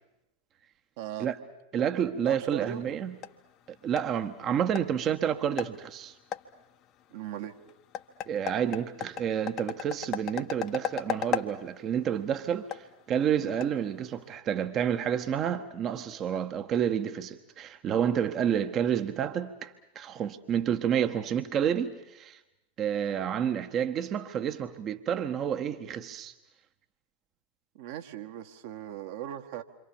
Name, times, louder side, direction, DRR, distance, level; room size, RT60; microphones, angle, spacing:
voice 1, 1.0-1.3 2.3-2.8 7.1-7.6 27.7-29.6, right 12 dB, 50° right, 1.9 m, -38 dB
voice 2, 1.7-3.1 3.8-6.1 8.3-22.4 22.8-26.3, right 8 dB, 30° right, 1.4 m, -29 dB
sound 1, 2.6-14.4, left 9 dB, 35° left, 1.3 m, -39 dB
27.5 x 26.0 x 7.2 m
figure-of-eight pair, 90°, 0 cm